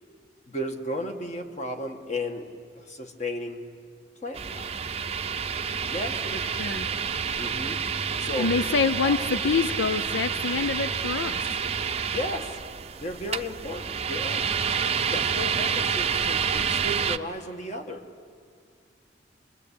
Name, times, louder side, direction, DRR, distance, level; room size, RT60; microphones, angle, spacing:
voice 1, 0.5-3.6 4.2-4.7 5.9-6.4 7.4-7.8 8.2-8.5 9.0-9.2 12.1-12.6 13.0-14.5 14.8-18.0, left 1 dB, 40° left, 4 dB, 1.9 m, -34 dB
sound 1, 4.3-17.2, right 6 dB, 35° right, 0.6 m, -28 dB
voice 2, 6.5-6.9 8.4-11.5, left 4 dB, 85° left, 11 dB, 0.6 m, -26 dB
27.5 x 21.5 x 8.6 m, 2.1 s
head